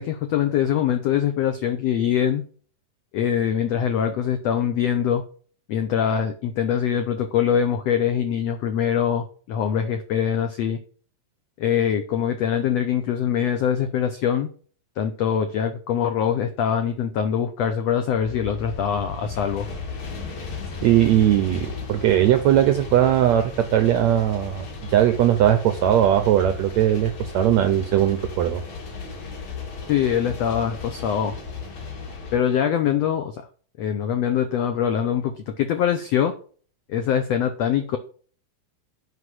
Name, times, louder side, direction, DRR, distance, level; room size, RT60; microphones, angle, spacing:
voice 1, 0.0-2.4 3.1-5.2 5.7-10.8 11.6-14.5 15.0-19.7 29.9-31.3 32.3-33.4 33.8-36.3 36.9-38.0, left 8 dB, 80° left, 7 dB, 1.4 m, -23 dB
sound 1, 18.2-32.4, left 5 dB, 50° left, 3.5 m, -35 dB
voice 2, 20.8-28.6, right 11 dB, 80° right, 8 dB, 1.6 m, -19 dB
8.1 x 5.3 x 7.7 m, 0.42 s
omnidirectional pair, 4.1 m